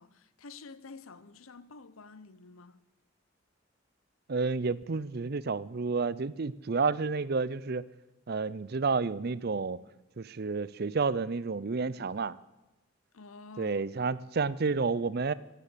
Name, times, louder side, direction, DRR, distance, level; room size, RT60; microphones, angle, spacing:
voice 1, 0.0-2.8 13.1-14.2, left 4 dB, 85° left, 0.8 m, -50 dB
voice 2, 4.3-7.8 8.3-9.8 10.2-12.4 13.6-15.3, right 4 dB, 50° right, 0.5 m, -30 dB
16.5 x 9.1 x 8.5 m
head